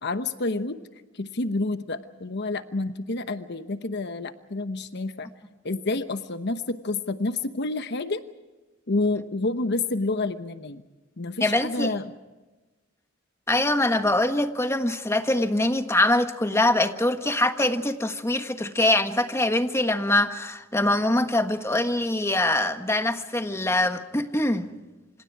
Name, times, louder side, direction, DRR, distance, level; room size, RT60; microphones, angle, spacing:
voice 1, 0.0-0.8 1.1-5.3 5.6-8.2 8.9-10.8 11.2-12.1, left 2 dB, 60° left, 1.0 m, -29 dB
voice 2, 11.4-11.9 13.5-24.7, left 1 dB, 15° left, 1.4 m, -23 dB
27.5 x 27.0 x 4.8 m
head